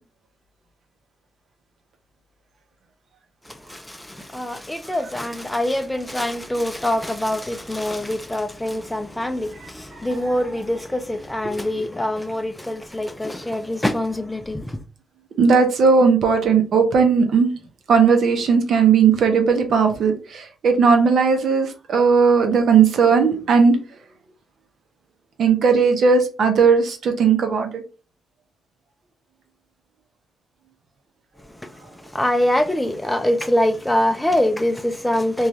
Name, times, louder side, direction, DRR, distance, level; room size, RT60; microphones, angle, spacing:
voice 1, 3.5-14.8 31.4-35.5, left 1 dB, 10° left, 0.4 m, -24 dB
voice 2, 15.4-17.5 17.9-23.8 25.4-27.8, right 5 dB, 70° right, 0.7 m, -17 dB
2.6 x 2.3 x 3.0 m
cardioid pair, 70°, 0 cm